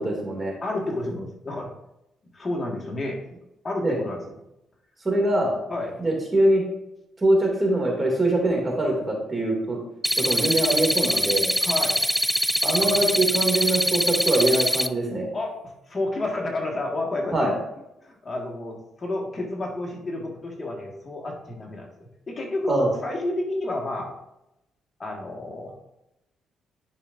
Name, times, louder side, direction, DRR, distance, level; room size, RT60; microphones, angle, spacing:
voice 1, 0.0-0.6 3.8-4.0 5.0-5.5 6.0-6.6 7.2-9.8 10.2-11.5 12.6-15.3 17.3-17.5 22.7-22.9, right 1 dB, 25° right, -1 dB, 2.5 m, -23 dB
voice 2, 0.6-1.7 2.3-3.2 3.6-4.3 5.7-5.9 11.6-12.0 12.8-13.0 15.3-15.5 15.9-17.5 18.0-21.9 22.3-24.2 25.0-25.8, left 2 dB, 30° left, 0 dB, 1.8 m, -30 dB
sound 1, 10.0-14.9, equal, ahead, 0.3 m, -23 dB
10.5 x 5.1 x 2.6 m, 0.88 s
cardioid pair, 90°, 0 cm